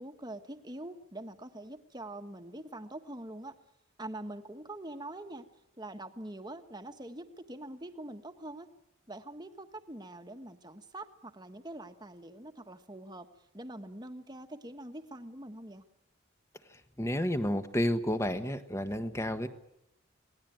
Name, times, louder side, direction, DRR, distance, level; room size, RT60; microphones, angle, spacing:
voice 1, 0.0-3.5 4.0-5.4 5.8-8.7 9.1-13.3 13.5-15.8, right 1 dB, 20° right, 7 dB, 1.4 m, -44 dB
voice 2, 17.0-19.5, left 1 dB, 15° left, 9 dB, 1.3 m, -30 dB
27.0 x 19.5 x 9.2 m, 0.85 s
head